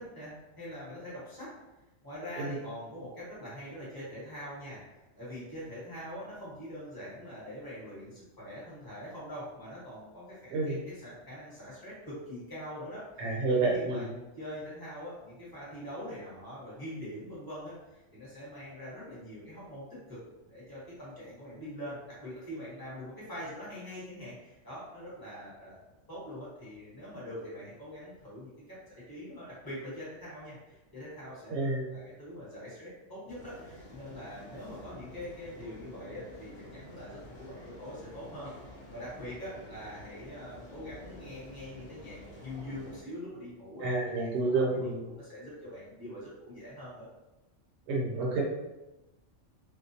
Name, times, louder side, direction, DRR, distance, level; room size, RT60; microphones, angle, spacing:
voice 1, 0.0-1.5 2.0-4.8 5.2-17.7 18.1-20.2 20.5-25.7 26.1-38.5 38.9-47.1, equal, 20° left, -9 dB, 1.0 m, -43 dB
voice 2, 13.2-14.1 31.5-32.0 43.8-45.0 47.9-48.4, right 3 dB, 65° right, -3 dB, 0.9 m, -29 dB
sound 1, 33.3-43.0, left 1 dB, 45° left, 0.7 m, -49 dB
2.4 x 2.2 x 2.7 m, 1.0 s
omnidirectional pair, 1.4 m